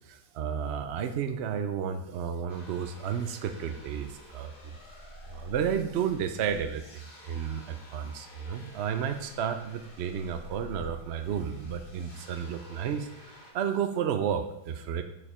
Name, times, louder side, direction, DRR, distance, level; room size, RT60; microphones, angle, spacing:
voice 1, 0.1-4.7 5.3-15.0, right 8 dB, 70° right, 8 dB, 0.6 m, -32 dB
sound 1, 2.5-13.5, left 3 dB, 65° left, 2.1 m, -49 dB
6.9 x 5.2 x 4.9 m, 0.86 s
omnidirectional pair, 1.8 m